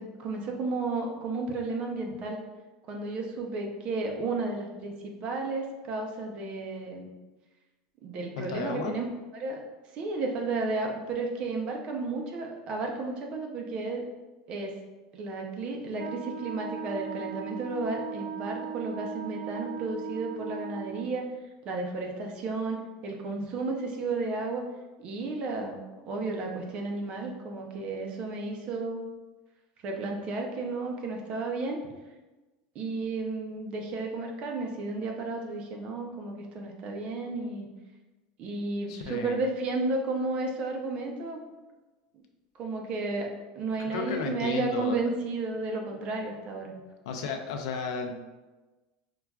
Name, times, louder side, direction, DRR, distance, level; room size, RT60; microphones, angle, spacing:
voice 1, 0.0-2.4 2.9-7.1 8.0-9.1 9.3-9.6 9.9-14.0 14.5-14.7 15.1-21.3 21.6-22.8 23.0-24.7 25.0-25.8 26.1-29.1 29.8-31.8 32.7-37.7 38.4-41.4 42.6-46.7, right 3 dB, 40° right, 2 dB, 0.6 m, -33 dB
voice 2, 8.4-9.0 38.9-39.4 43.8-45.0 47.1-48.2, left 5 dB, 85° left, 4 dB, 0.5 m, -33 dB
Wind instrument woodwind instrument, 16.0-21.1, right 8 dB, 80° right, 0.4 m, -38 dB
5.6 x 2.3 x 2.3 m, 1.2 s
supercardioid pair, 140°, 3 cm